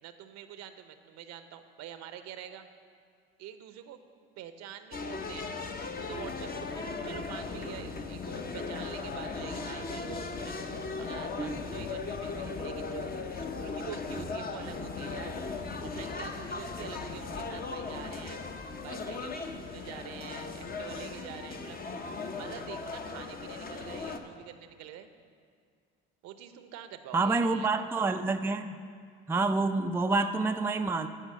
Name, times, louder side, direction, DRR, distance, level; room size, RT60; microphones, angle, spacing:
voice 1, 0.0-2.7 3.4-4.0 4.4-5.6 5.9-10.7 11.0-13.1 13.3-15.4 15.8-18.4 18.8-21.8 22.3-25.1 26.2-27.9, right 10 dB, 65° right, 9 dB, 0.8 m, -46 dB
sound 1, 4.9-24.2, left 4 dB, 30° left, 0.9 m, -37 dB
voice 2, 27.1-28.7 29.3-31.1, right 3 dB, 10° right, 6 dB, 0.4 m, -28 dB
11.5 x 4.8 x 7.8 m, 2.1 s
supercardioid pair, 75°, 29 cm